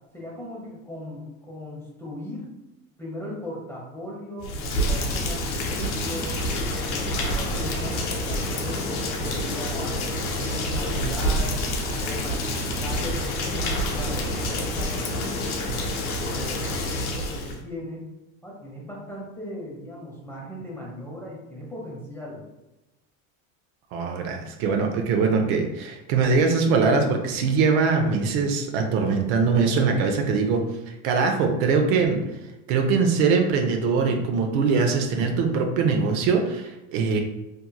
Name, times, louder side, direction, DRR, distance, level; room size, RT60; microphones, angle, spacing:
voice 1, 0.1-2.5 3.0-6.4 6.8-9.9 10.4-11.6 12.0-15.8 16.3-18.1 18.4-22.4, left 1 dB, 5° left, -3 dB, 0.7 m, -38 dB
Rain, 4.4-17.6, left 1 dB, 85° left, 0.7 m, -28 dB
sound 1, 5.6-16.7, equal, 25° left, 1.3 m, -39 dB
voice 2, 23.9-32.2 32.7-37.2, right 4 dB, 60° right, 3 dB, 0.6 m, -22 dB
2.7 x 2.6 x 2.2 m, 0.99 s
supercardioid pair, 110°, 42 cm